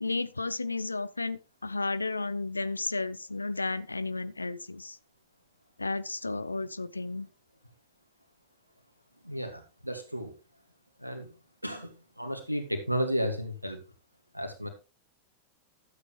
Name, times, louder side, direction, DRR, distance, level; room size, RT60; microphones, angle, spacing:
voice 1, 0.0-5.0 5.8-7.3, left 3 dB, 80° left, 0.6 m, -33 dB
voice 2, 9.2-10.3 11.0-11.3 11.6-13.8 14.3-14.7, equal, 90° right, 2.1 m, -33 dB
12.0 x 8.3 x 3.3 m
figure-of-eight pair, 90°, 0 cm